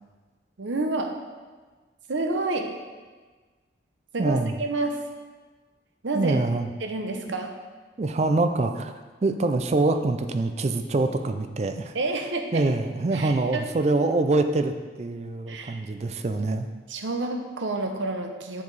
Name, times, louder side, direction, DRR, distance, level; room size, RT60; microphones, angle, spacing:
voice 1, 0.6-1.1 2.1-2.7 4.1-5.0 6.0-6.4 6.8-7.5 11.9-12.7 13.1-13.7 15.5-15.8 16.9-18.6, right 2 dB, 80° right, 4 dB, 0.7 m, -29 dB
voice 2, 4.2-4.5 6.1-6.7 8.0-8.9 9.2-11.9 12.5-16.7, right 2 dB, 35° right, 8 dB, 0.3 m, -25 dB
7.2 x 4.7 x 4.0 m, 1.4 s
head